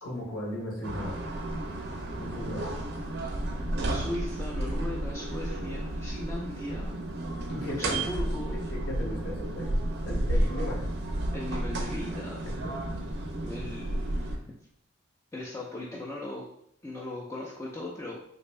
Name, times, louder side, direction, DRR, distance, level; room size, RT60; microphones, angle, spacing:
voice 1, 0.0-1.2 2.2-2.7 7.5-8.0 8.7-9.8 10.0-10.9, left 1 dB, 75° left, -3 dB, 1.1 m, -36 dB
sound 1, 0.8-14.4, right 1 dB, 50° right, 0.4 m, -32 dB
voice 2, 3.9-7.0 7.6-8.6 10.3-10.5 11.3-12.4 13.4-14.5 15.3-16.5 16.8-18.2, left 1 dB, 15° left, -5 dB, 0.3 m, -38 dB
3.3 x 2.5 x 3.1 m, 0.74 s
head